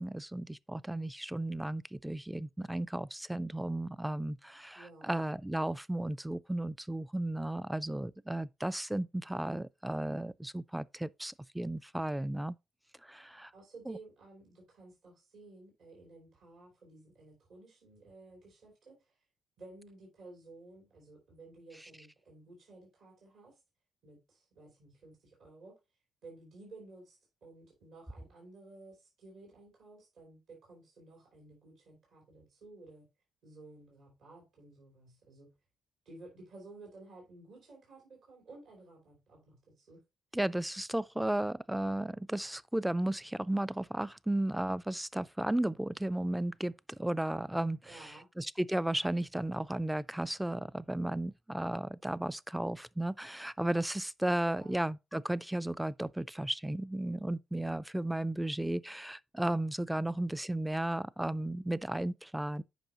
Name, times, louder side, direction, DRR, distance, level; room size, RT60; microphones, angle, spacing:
voice 1, 0.0-12.6 13.0-13.5 13.9-14.0 40.3-48.0 48.4-62.6, right 1 dB, 5° right, 0.3 m, -34 dB
voice 2, 4.7-5.2 13.5-19.2 19.6-23.6 24.0-25.8 26.2-33.1 33.4-35.5 36.0-40.0 47.8-48.3 54.5-54.8, right 2 dB, 70° right, 3.2 m, -54 dB
9.0 x 5.5 x 2.9 m
cardioid pair, 90°, 0 cm